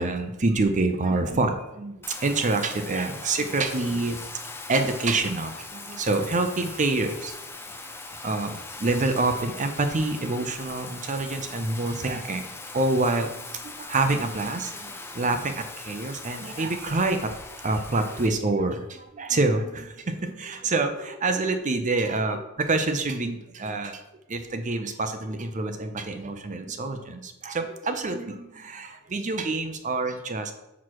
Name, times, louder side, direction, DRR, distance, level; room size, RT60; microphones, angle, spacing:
voice 1, 0.0-4.2 4.7-7.3 8.2-17.3 17.6-24.0 24.3-30.5, right 2 dB, 35° right, 7 dB, 0.6 m, -27 dB
Bathtub (filling or washing), 2.0-18.3, left 3 dB, 10° left, 0.6 m, -40 dB
6.1 x 6.0 x 4.7 m, 0.91 s
head